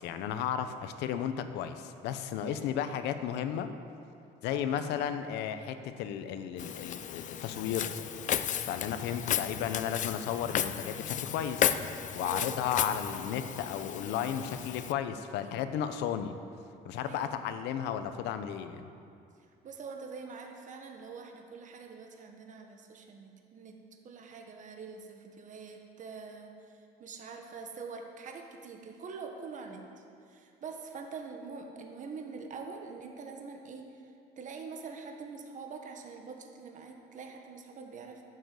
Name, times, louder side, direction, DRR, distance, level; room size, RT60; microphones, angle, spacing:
voice 1, 0.0-3.7 4.4-7.9 8.7-11.7 12.1-16.3 16.8-18.9, left 9 dB, 90° left, 10 dB, 0.8 m, -34 dB
voice 2, 2.4-2.8 4.5-4.8 9.1-9.4 12.2-13.0 17.0-17.3 19.6-23.8 24.0-38.2, right 5 dB, 50° right, 3 dB, 1.4 m, -45 dB
Walk footsteps, 6.6-14.9, left 9 dB, 50° left, 0.5 m, -34 dB
11.5 x 7.8 x 7.7 m, 2.5 s
cardioid pair, 110°, 17 cm